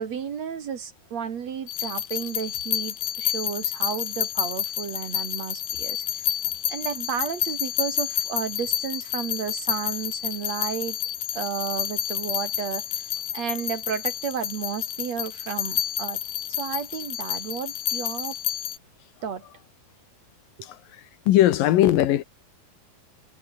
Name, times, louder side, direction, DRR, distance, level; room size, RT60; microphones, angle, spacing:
voice 1, 0.0-6.4 6.7-11.0 11.3-16.2 16.6-18.4 19.2-19.4, right 7 dB, 50° right, 2.7 m, -32 dB
sound 1, 1.7-18.8, left 11 dB, 90° left, 3.9 m, -29 dB
voice 2, 21.3-22.2, left 13 dB, 75° left, 2.7 m, -19 dB
omnidirectional pair, 4.3 m